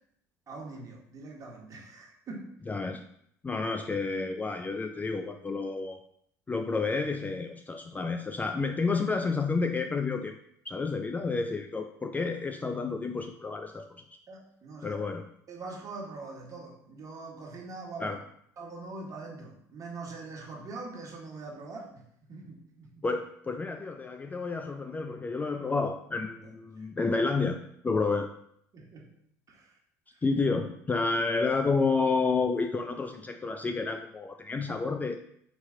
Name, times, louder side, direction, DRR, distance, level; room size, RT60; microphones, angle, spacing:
voice 1, 0.5-2.5 3.5-3.6 14.3-15.0 15.5-18.1 18.6-22.0 22.3-23.0 26.8-26.9 28.7-29.1 29.5-29.7 30.1-30.2, right 3 dB, 35° right, -1 dB, 1.3 m, -43 dB
voice 2, 2.7-3.0 3.4-6.0 6.5-10.4 10.7-14.0 14.8-15.2 18.0-18.2 23.0-28.3 30.2-35.2, left 4 dB, 15° left, 6 dB, 0.4 m, -30 dB
4.5 x 2.9 x 3.7 m, 0.70 s
hypercardioid pair, 65°, 9 cm